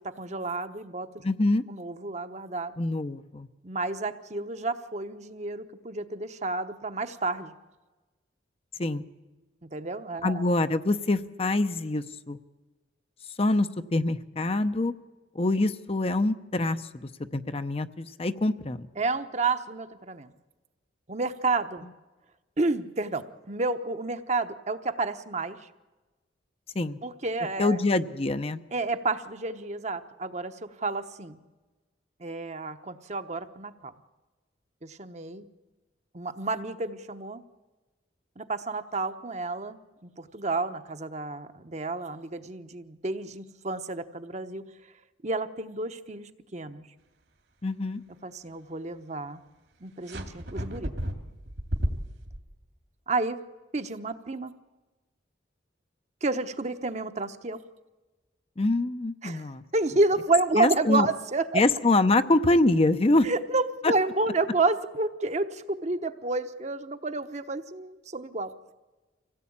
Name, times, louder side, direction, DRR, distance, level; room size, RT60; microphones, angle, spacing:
voice 1, 0.0-1.2 1.7-2.7 3.6-7.5 9.6-10.4 19.0-20.3 21.1-21.9 22.6-25.7 27.0-27.8 28.7-31.4 32.2-33.9 34.8-35.4 36.1-37.4 38.4-44.6 45.2-46.8 48.2-49.4 49.8-50.9 53.1-53.4 53.7-54.5 56.2-57.6 59.2-61.6 63.2-68.5, right 3 dB, 40° right, 8 dB, 1.0 m, -30 dB
voice 2, 1.2-1.6 2.8-3.5 8.8-9.0 10.2-12.4 13.4-14.9 15.3-18.9 26.7-27.0 27.6-28.6 47.6-48.0 58.6-59.6 60.6-61.1 61.5-63.3, left 2 dB, 30° left, 10 dB, 0.7 m, -25 dB
sound 1, 50.1-52.4, equal, 70° right, 2.4 m, -32 dB
25.5 x 17.0 x 8.7 m, 1.2 s
head